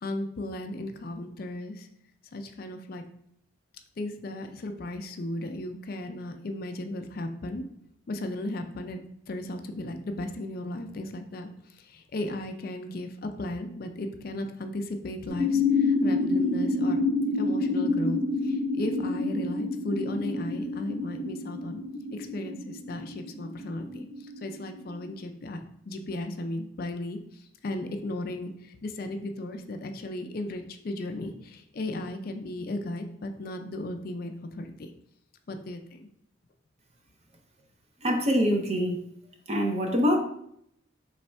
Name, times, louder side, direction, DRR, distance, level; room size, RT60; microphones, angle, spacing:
voice 1, 0.0-1.9 2.3-3.1 4.0-7.7 8.1-9.0 9.3-17.0 17.3-21.8 22.1-25.6 25.9-34.9 35.5-36.1, left 1 dB, 45° left, 6 dB, 0.4 m, -35 dB
sound 1, 15.3-25.1, left 3 dB, 50° right, 1.1 m, -28 dB
voice 2, 38.0-39.0 39.5-40.2, equal, 30° right, 4 dB, 0.5 m, -24 dB
3.4 x 3.2 x 4.3 m, 0.72 s
head